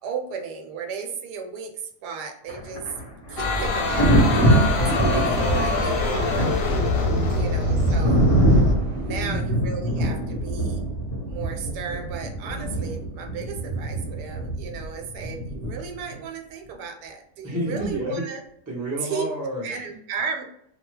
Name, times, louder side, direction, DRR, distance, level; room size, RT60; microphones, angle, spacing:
voice 1, 0.0-2.9 3.3-6.8 7.3-8.3 9.0-10.8 11.3-18.4 19.0-19.3 19.6-20.4, right 6 dB, 85° right, 4 dB, 1.2 m, -34 dB
Thunder, 2.5-16.1 17.8-18.0, right 1 dB, 25° left, 0.5 m, -24 dB
sound 1, 3.4-8.7, left 2 dB, 65° left, 0.9 m, -24 dB
sound 2, 3.9-9.4, right 2 dB, 65° right, 0.7 m, -35 dB
voice 2, 7.0-7.5 9.1-9.4 17.4-18.3 18.7-19.8, right 1 dB, 25° right, -4 dB, 0.3 m, -30 dB
2.6 x 2.3 x 3.1 m, 0.72 s
omnidirectional pair, 1.8 m